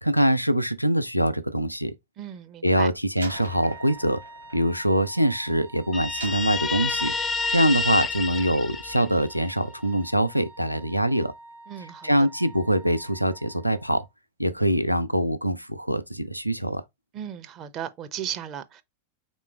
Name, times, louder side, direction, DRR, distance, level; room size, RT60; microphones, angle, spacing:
voice 1, 0.0-1.9 2.6-4.2 4.5-7.1 7.5-11.3 12.0-14.0 14.4-16.8, equal, 90° left, 0.5 m, -24 dB
voice 2, 2.2-2.9 11.7-12.1 17.1-18.8, right 9 dB, 35° right, 0.5 m, -36 dB
Slam, 3.2-5.6 6.2-7.4, right 3 dB, 85° right, 0.9 m, -44 dB
Wind instrument woodwind instrument, 3.3-14.1, right 2 dB, 60° right, 1.3 m, -48 dB
Guitar, 5.9-9.5, left 4 dB, 20° left, 0.3 m, -28 dB
3.6 x 3.0 x 4.3 m
figure-of-eight pair, 90°, 0 cm